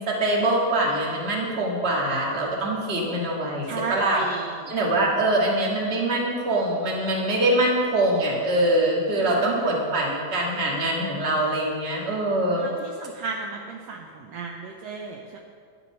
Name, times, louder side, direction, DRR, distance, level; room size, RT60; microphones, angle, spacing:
voice 1, 0.0-4.2 4.7-12.7, right 1 dB, 25° right, -3 dB, 1.8 m, -24 dB
voice 2, 3.7-4.7 9.1-9.7 12.6-15.4, right 4 dB, 70° right, 1 dB, 1.7 m, -35 dB
11.0 x 11.0 x 5.4 m, 2.1 s
omnidirectional pair, 3.3 m